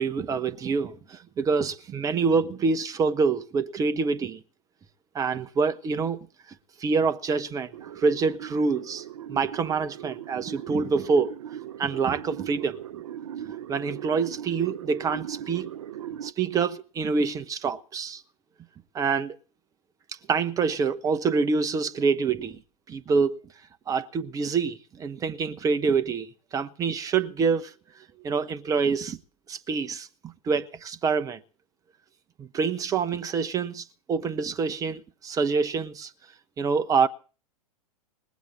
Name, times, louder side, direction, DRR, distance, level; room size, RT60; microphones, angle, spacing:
voice 1, 0.0-4.4 5.1-6.2 6.8-9.0 9.3-11.3 11.8-12.8 13.4-15.7 16.2-18.2 18.9-19.4 20.3-22.6 22.9-23.4 23.9-27.7 28.2-29.2 29.5-30.1 30.4-31.4 32.4-36.1 36.6-37.1, right 5 dB, 20° right, 0.9 m, -26 dB
sound 1, 7.7-16.3, right 10 dB, 60° right, 0.7 m, -39 dB
19.5 x 8.1 x 8.2 m
figure-of-eight pair, 100°, 19 cm